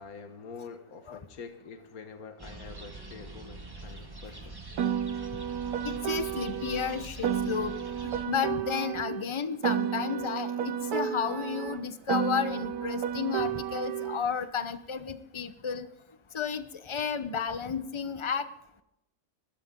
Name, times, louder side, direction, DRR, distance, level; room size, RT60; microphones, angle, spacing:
voice 1, 0.0-4.6, left 5 dB, 70° left, 6 dB, 1.8 m, -46 dB
sound 1, 2.4-8.3, right 2 dB, 15° right, 1.7 m, -44 dB
Piano, 4.8-9.2 9.6-14.2, right 9 dB, 80° right, 1.3 m, -32 dB
voice 2, 5.8-7.7 8.0-15.9 16.3-18.5, left 6 dB, 25° left, 11 dB, 0.8 m, -32 dB
23.0 x 13.5 x 3.8 m, 0.84 s
omnidirectional pair, 1.6 m